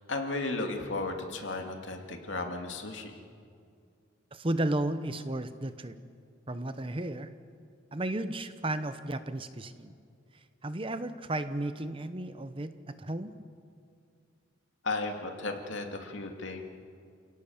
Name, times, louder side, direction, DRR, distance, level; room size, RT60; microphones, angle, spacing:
voice 1, 0.1-3.1 14.8-16.6, left 2 dB, 65° left, 4 dB, 2.5 m, -34 dB
voice 2, 4.3-6.0 6.5-7.3 7.9-9.9 10.6-13.3, right 1 dB, 25° right, 11 dB, 0.8 m, -33 dB
30.0 x 17.5 x 7.3 m, 2.3 s
head